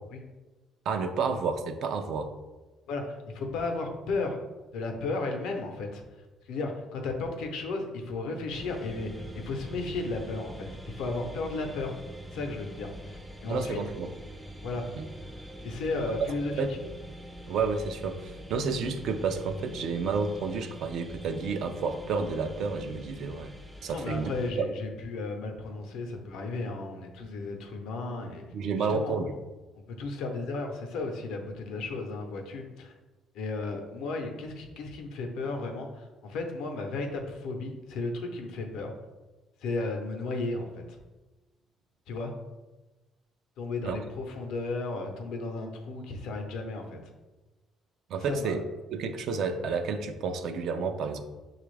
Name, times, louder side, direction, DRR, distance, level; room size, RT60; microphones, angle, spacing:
voice 1, 0.9-2.3 13.5-14.1 15.0-15.1 16.6-16.9 17.5-23.5 23.8-24.3 24.6-24.7 28.5-29.3 43.8-44.0 48.1-51.2, right 4 dB, 65° right, 7 dB, 0.4 m, -30 dB
voice 2, 2.9-4.4 4.7-6.0 6.5-11.9 12.3-13.8 14.6-14.8 15.6-16.7 23.9-28.4 28.8-29.1 29.9-32.9 33.3-38.9 39.6-40.8 42.1-42.3 43.6-47.0 48.2-48.6, left 3 dB, 85° left, 3 dB, 0.7 m, -34 dB
sound 1, 8.5-24.5, equal, 5° right, 0.4 m, -44 dB
5.9 x 2.4 x 3.2 m, 1.2 s
cardioid pair, 120°, 0 cm